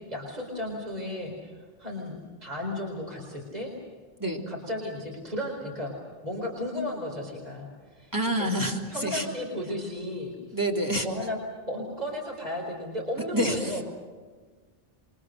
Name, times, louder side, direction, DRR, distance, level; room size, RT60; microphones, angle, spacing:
voice 1, 0.1-1.4 1.8-3.7 4.5-5.9 6.2-8.5 8.9-10.6 11.0-11.4 11.7-13.8, left 1 dB, 40° right, 0 dB, 4.6 m, -34 dB
voice 2, 8.1-9.3 10.5-11.1 13.3-13.8, equal, 20° right, 0 dB, 3.3 m, -27 dB
28.5 x 24.5 x 6.5 m, 1.4 s
omnidirectional pair, 1.0 m